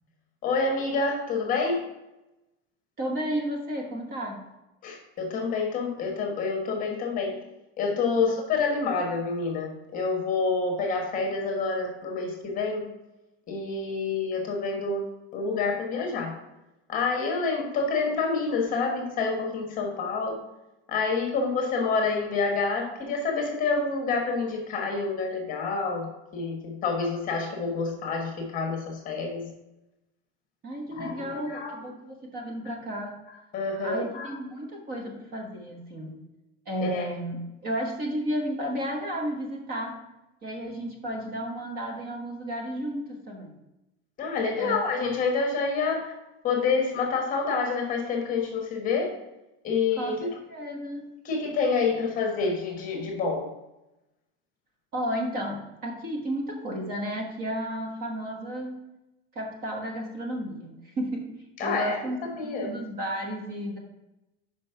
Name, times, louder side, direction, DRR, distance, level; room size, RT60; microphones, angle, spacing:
voice 1, 0.4-1.8 4.8-7.4 7.8-12.8 13.5-15.0 15.3-16.3 16.9-20.4 20.9-29.4 30.9-31.8 33.5-34.3 36.8-37.1 44.2-46.1 46.4-49.2 49.6-50.3 51.2-53.5 61.6-62.8, left 4 dB, 25° left, 1 dB, 1.3 m, -28 dB
voice 2, 3.0-4.4 8.2-8.3 30.6-33.1 33.8-36.2 36.7-40.0 40.4-43.6 44.5-44.8 50.0-51.1 54.9-58.8 59.3-61.3 61.6-62.2 62.4-63.8, equal, 30° right, 1 dB, 1.1 m, -33 dB
5.2 x 5.1 x 5.7 m, 0.95 s
supercardioid pair, 170°, 33 cm